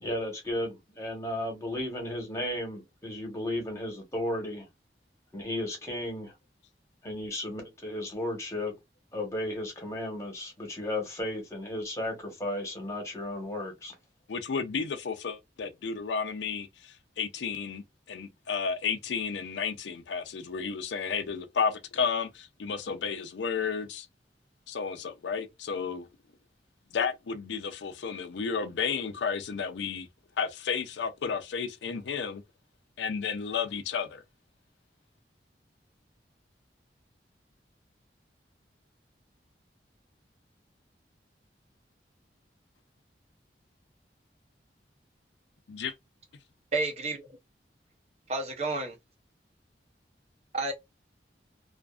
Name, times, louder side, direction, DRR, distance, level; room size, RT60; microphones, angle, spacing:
voice 1, 0.0-4.7 5.3-6.3 7.0-8.7 9.1-13.9, left 1 dB, 15° left, 1.0 m, -34 dB
voice 2, 14.3-24.1 24.7-26.1 26.9-30.1 30.4-32.4 33.0-34.2 45.7-45.9, left 6 dB, 90° left, 0.4 m, -32 dB
voice 3, 46.7-47.3 48.3-49.0 50.5-50.7, right 3 dB, 35° right, 0.6 m, -30 dB
2.5 x 2.3 x 2.3 m
head